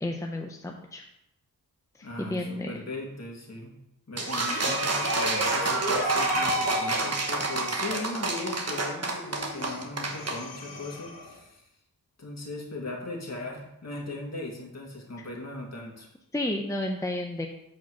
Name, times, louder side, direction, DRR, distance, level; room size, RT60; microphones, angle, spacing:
voice 1, 0.0-1.0 2.2-2.8 4.2-4.3 16.3-17.5, left 1 dB, 10° left, 2 dB, 0.7 m, -31 dB
voice 2, 2.0-3.7 4.1-11.7 12.2-16.1, left 2 dB, 45° left, -1 dB, 2.1 m, -38 dB
sound 1, 4.2-10.4, right 2 dB, 45° right, 1.3 m, -27 dB
Breathing, 9.0-11.6, left 3 dB, 75° left, 2.2 m, -44 dB
8.3 x 4.4 x 6.2 m, 0.81 s
wide cardioid pair, 95°, 36 cm